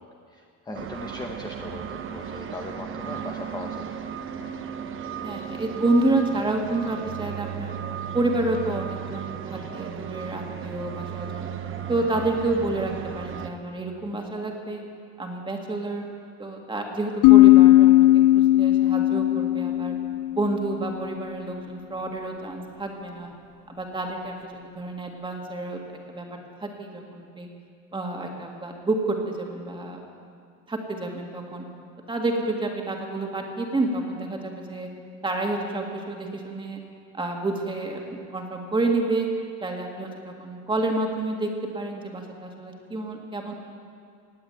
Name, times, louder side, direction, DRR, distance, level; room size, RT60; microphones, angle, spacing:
voice 1, 0.0-4.1, left 3 dB, 10° left, 2 dB, 0.7 m, -39 dB
sound 1, 0.7-13.5, right 8 dB, 35° right, 0.9 m, -35 dB
voice 2, 5.2-7.8 8.1-11.5 11.9-14.8 15.2-16.1 16.4-18.1 18.3-20.0 20.4-23.3 23.7-25.8 26.1-26.3 26.6-27.5 27.9-30.0 30.7-31.6 32.1-34.9 35.2-36.8 37.1-39.3 39.6-43.5, right 2 dB, 15° right, 1 dB, 2.0 m, -29 dB
sound 2, 17.2-20.8, left 16 dB, 65° left, 0.5 m, -16 dB
18.5 x 8.5 x 9.1 m, 2.3 s
cardioid pair, 155°, 34 cm